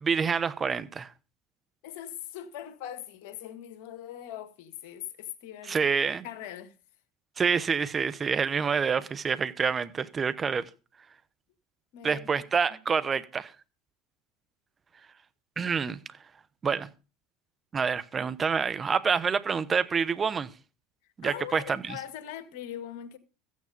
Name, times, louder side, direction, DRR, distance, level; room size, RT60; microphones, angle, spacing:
voice 1, 0.0-1.1 5.6-6.2 7.4-10.7 12.0-13.5 15.6-16.0 16.6-16.9 17.7-20.5 21.2-22.0, right 6 dB, 30° right, 1.1 m, -27 dB
voice 2, 1.8-5.8 6.2-6.7 11.9-12.4 21.2-23.2, left 11 dB, 70° left, 1.7 m, -41 dB
14.5 x 9.5 x 5.2 m
supercardioid pair, 95°, 0 cm